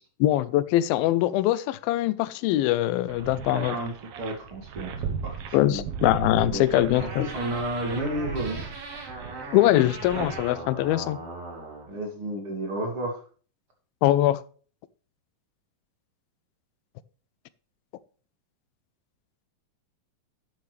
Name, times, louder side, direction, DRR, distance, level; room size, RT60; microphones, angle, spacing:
voice 1, 0.2-3.8 5.5-7.2 9.5-11.2 14.0-14.4, left 14 dB, 85° left, 2.4 m, -22 dB
sound 1, 3.1-10.4, right 7 dB, 90° right, 1.3 m, -37 dB
voice 2, 3.5-3.9 4.2-4.9 5.2-5.4 5.6-5.8 6.5-8.6 11.9-13.2, right 1 dB, 40° right, 2.8 m, -31 dB
sound 2, 6.9-11.9, right 3 dB, 75° right, 5.4 m, -39 dB
11.5 x 9.0 x 3.2 m
omnidirectional pair, 4.2 m